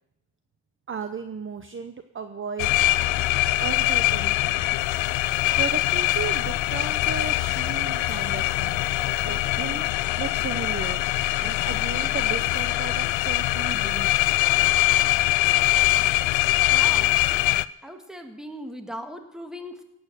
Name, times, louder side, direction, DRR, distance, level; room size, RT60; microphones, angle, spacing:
voice 1, 0.9-4.7 5.6-8.9 9.2-9.8 10.2-11.0 11.4-14.1, right 6 dB, 30° right, 8 dB, 0.8 m, -35 dB
sound 1, 2.6-17.7, left 16 dB, 85° left, 0.6 m, -23 dB
sound 2, 7.4-12.6, left 6 dB, 50° left, 2.3 m, -48 dB
voice 2, 16.7-17.2 17.8-19.8, equal, ahead, 5 dB, 1.7 m, -38 dB
17.5 x 8.9 x 6.7 m, 0.83 s
cardioid pair, 115°, 45 cm